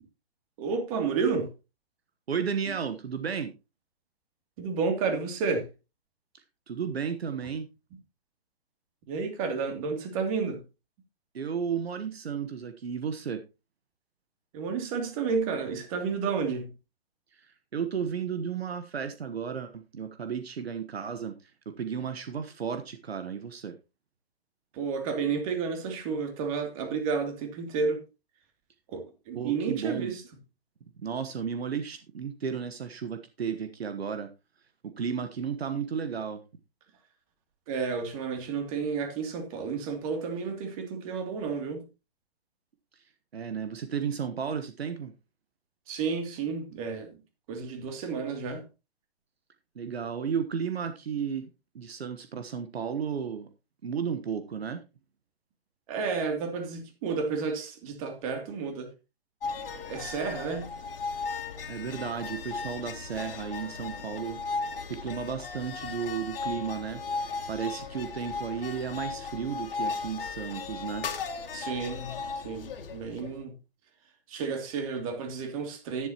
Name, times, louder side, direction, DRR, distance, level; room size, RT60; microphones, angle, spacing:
voice 1, 0.6-1.5 4.6-5.7 9.1-10.6 14.5-16.7 24.7-28.0 28.9-30.2 37.7-41.8 45.9-47.2 47.5-48.6 55.9-58.9 59.7-60.7 71.5-73.6 74.3-76.1, right 5 dB, 35° right, 2.7 m, -31 dB
voice 2, 2.3-3.5 6.3-7.7 11.3-13.4 17.3-23.7 29.3-30.1 31.0-34.3 34.8-36.4 42.9-43.0 43.3-45.1 49.7-51.5 51.7-53.5 53.8-54.8 61.7-64.6 64.9-71.1, right 7 dB, 75° right, 1.3 m, -33 dB
sound 1, 59.4-73.4, left 4 dB, 60° left, 2.1 m, -36 dB
11.0 x 11.0 x 2.9 m
hypercardioid pair, 140°, 31 cm